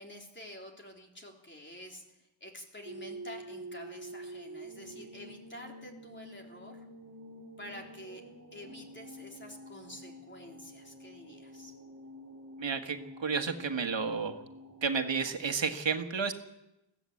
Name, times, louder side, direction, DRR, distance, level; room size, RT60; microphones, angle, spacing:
voice 1, 0.0-2.0 2.4-6.9 7.6-8.2 8.5-11.7, equal, 25° left, 1 dB, 3.7 m, -48 dB
sound 1, 2.8-15.4, right 1 dB, 35° right, 3.3 m, -48 dB
voice 2, 12.6-14.4 14.8-16.3, right 5 dB, 70° right, 6 dB, 1.7 m, -31 dB
21.5 x 15.5 x 8.5 m, 0.93 s
wide cardioid pair, 125°, 46 cm